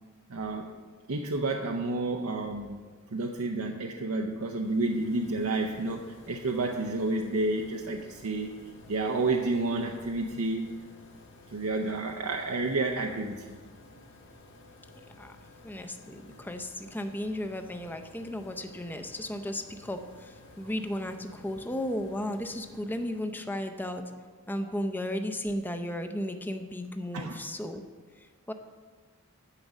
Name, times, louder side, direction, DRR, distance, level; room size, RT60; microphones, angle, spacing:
voice 1, 0.3-0.7 1.1-2.8 3.1-10.7 11.5-13.6 27.1-27.4, right 2 dB, 80° right, 2 dB, 0.6 m, -30 dB
sound 1, 4.3-23.7, left 2 dB, 55° left, 1.8 m, -54 dB
voice 2, 15.6-24.0 24.5-27.8 28.5-28.6, left 1 dB, 10° left, 6 dB, 0.5 m, -34 dB
9.8 x 5.3 x 7.2 m, 1.5 s
head